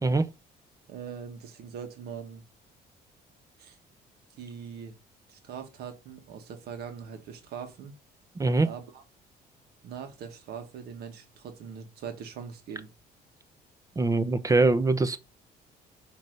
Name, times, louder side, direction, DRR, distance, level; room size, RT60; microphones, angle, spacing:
voice 1, 0.9-2.4 3.6-3.8 4.4-4.9 5.3-7.9 8.6-9.0 9.8-12.9, right 7 dB, 70° right, 1.6 m, -41 dB
voice 2, 8.4-8.7 14.0-15.2, right 3 dB, 20° right, 0.6 m, -23 dB
7.9 x 3.3 x 5.2 m
cardioid pair, 110°, 17 cm